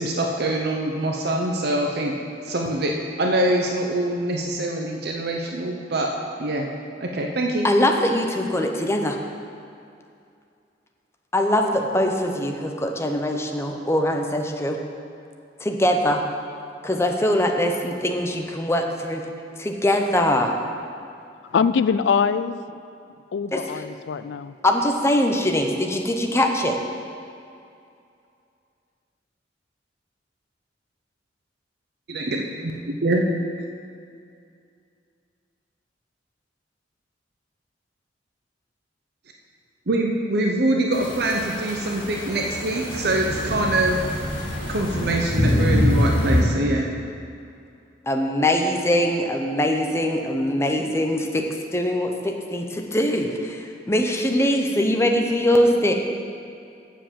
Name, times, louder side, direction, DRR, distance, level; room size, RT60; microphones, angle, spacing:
voice 1, 0.0-2.2 2.4-6.1 6.4-6.7 7.0-7.7 32.1-33.3 39.9-44.0 44.7-46.9, right 1 dB, 60° right, 1 dB, 0.7 m, -24 dB
voice 2, 7.6-9.2 11.3-14.8 15.6-16.2 16.8-19.2 19.6-20.5 23.5-23.8 24.6-26.8 48.1-51.4 51.7-55.9, left 1 dB, 15° left, 3 dB, 0.7 m, -22 dB
voice 3, 21.5-22.6 23.3-24.5, left 6 dB, 70° left, 13 dB, 0.4 m, -23 dB
sound 1, 40.9-46.4, left 1 dB, 45° left, 2.6 m, -25 dB
7.3 x 6.8 x 7.4 m, 2.5 s
head